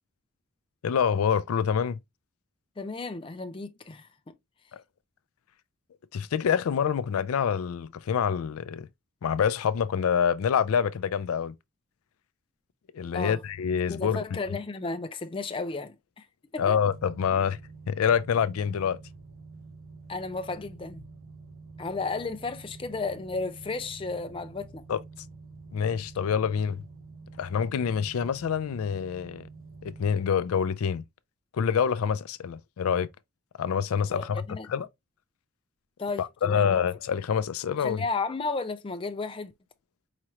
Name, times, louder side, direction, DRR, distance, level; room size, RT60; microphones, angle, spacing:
voice 1, 0.8-2.0 4.7-4.8 6.1-8.9 9.2-11.5 12.9-14.2 16.6-17.6 17.9-19.0 24.9-25.0 25.7-26.8 27.4-29.4 29.8-31.0 31.5-33.1 33.6-34.4 34.7-34.9 36.2-38.0, left 7 dB, 85° left, 0.4 m, -26 dB
voice 2, 2.8-4.3 13.1-13.4 13.9-16.3 16.5-16.8 17.3-17.4 20.1-21.0 21.8-24.8 34.1-34.7 36.0-36.8 37.8-39.5, left 3 dB, 25° left, 0.4 m, -33 dB
sound 1, 16.8-30.2, right 3 dB, 65° right, 0.8 m, -47 dB
4.8 x 2.9 x 3.0 m
head